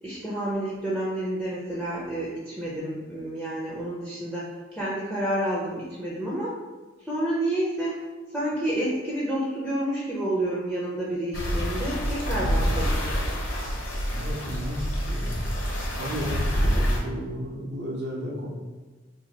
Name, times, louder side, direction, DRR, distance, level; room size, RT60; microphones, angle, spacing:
voice 1, 0.0-6.5 7.0-8.0 8.3-13.0 16.7-16.9, right 1 dB, ahead, -8 dB, 0.5 m, -29 dB
sound 1, 11.3-17.0, equal, 70° left, 0.7 m, -27 dB
voice 2, 14.1-15.5 16.0-18.5, equal, 55° right, -2 dB, 0.7 m, -34 dB
2.7 x 2.4 x 4.1 m, 1.3 s
head